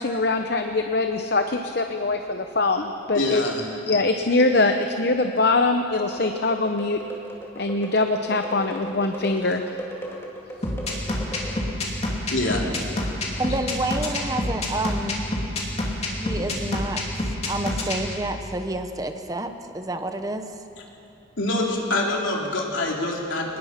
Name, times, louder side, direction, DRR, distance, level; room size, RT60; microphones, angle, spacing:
voice 1, 0.0-3.4 3.9-7.0 7.6-9.6 11.5-11.6, left 3 dB, 55° left, 6 dB, 0.8 m, -23 dB
voice 2, 3.1-3.7 12.3-12.7 21.4-23.6, left 2 dB, 85° left, -1 dB, 3.3 m, -25 dB
sound 1, 5.9-12.0, equal, 15° left, 2.5 m, -38 dB
sound 2, 10.6-18.0, left 1 dB, 35° left, 2.9 m, -27 dB
voice 3, 13.4-15.3 16.2-20.5, right 2 dB, 20° right, 7 dB, 0.9 m, -29 dB
23.5 x 20.0 x 5.9 m, 2.7 s
head